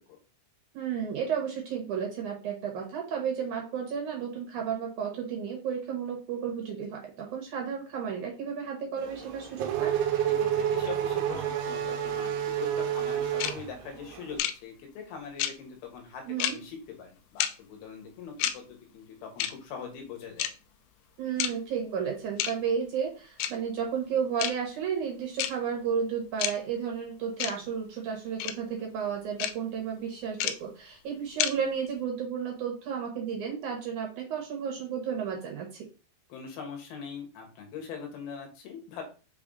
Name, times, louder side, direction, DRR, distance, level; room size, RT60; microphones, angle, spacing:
voice 1, 0.7-10.0 16.3-16.6 21.2-35.9, right 7 dB, 70° right, 0 dB, 1.9 m, -32 dB
Race car auto racing / Accelerating revving vroom, 9.0-14.3, right 10 dB, 85° right, 3.1 m, -29 dB
voice 2, 10.3-20.5 36.3-39.0, left 6 dB, 65° left, 3 dB, 3.0 m, -42 dB
sound 1, 13.4-13.5 14.4-14.5 15.4-15.5 16.4-16.5 17.4-17.5 18.4-18.5 19.4-19.5 20.4-20.5 21.4-21.5 22.4-22.5 23.4-23.5 24.4-24.5 25.4-25.5 26.4-26.5 27.4-27.5 28.4-28.5 29.4-29.5 30.4-30.5 31.4-31.5, left 11 dB, 80° left, 2.6 m, -28 dB
6.9 x 3.4 x 3.9 m, 0.34 s
omnidirectional pair, 5.3 m